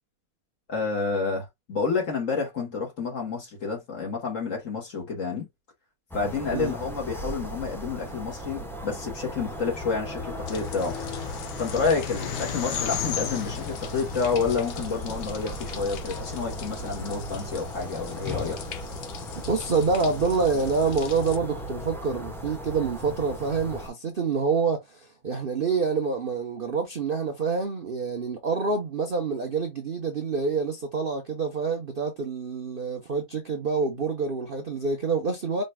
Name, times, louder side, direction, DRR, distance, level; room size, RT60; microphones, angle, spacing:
voice 1, 0.7-5.5 6.1-10.9 11.6-18.6, left 4 dB, 50° left, 2.1 m, -29 dB
sound 1, 6.1-23.9, equal, 5° left, 0.5 m, -37 dB
sound 2, 10.1-15.5, left 8 dB, 75° left, 1.4 m, -35 dB
sound 3, 10.5-21.4, left 9 dB, 90° left, 1.4 m, -42 dB
voice 2, 19.5-35.6, right 4 dB, 45° right, 0.7 m, -27 dB
5.1 x 3.2 x 2.2 m
omnidirectional pair, 1.9 m